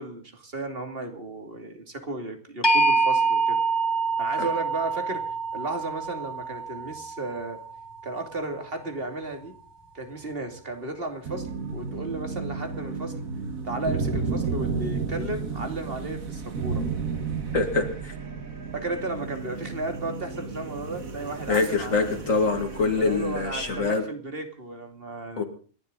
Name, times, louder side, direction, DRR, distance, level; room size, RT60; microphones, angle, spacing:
voice 1, 0.0-3.6 4.2-5.2 5.5-7.6 8.0-9.5 9.9-13.2 13.6-16.8 18.7-22.1 23.0-25.4, right 2 dB, 45° right, 5 dB, 2.9 m, -34 dB
sound 1, 2.6-8.6, right 3 dB, 15° left, 2.7 m, -26 dB
sound 2, 11.2-23.9, right 5 dB, 80° right, 2.2 m, -33 dB
voice 2, 17.5-18.1 21.5-24.1 25.4-25.5, left 4 dB, 70° left, 5 dB, 2.4 m, -25 dB
28.5 x 11.5 x 4.0 m, 0.40 s
omnidirectional pair, 1.4 m